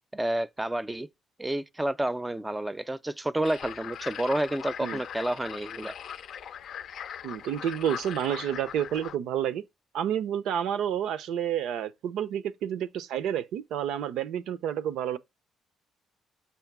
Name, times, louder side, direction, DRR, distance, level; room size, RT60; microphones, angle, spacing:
voice 1, 0.1-1.1 1.4-6.0, right 1 dB, 10° right, 0.5 m, -30 dB
sound 1, 3.4-9.2, left 9 dB, 70° left, 0.5 m, -40 dB
voice 2, 7.2-9.6 9.9-15.2, right 9 dB, 85° right, 0.6 m, -30 dB
6.9 x 2.9 x 5.9 m
cardioid pair, 90°, 0 cm